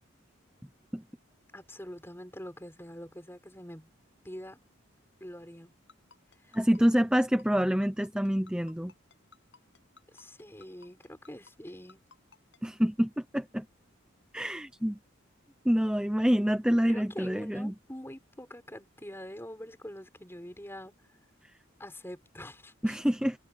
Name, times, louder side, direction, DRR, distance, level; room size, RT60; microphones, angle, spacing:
voice 1, 1.5-3.9 4.2-4.6 5.2-5.7 6.4-6.6 10.1-12.0 16.9-20.9 21.8-23.0, equal, 10° left, 6.8 m, -45 dB
Ringtone, 5.9-12.6, left 5 dB, 60° left, 7.9 m, -56 dB
voice 2, 6.5-8.9 12.6-13.7 14.3-15.0 15.6-17.7 22.8-23.4, equal, 5° right, 0.8 m, -27 dB
head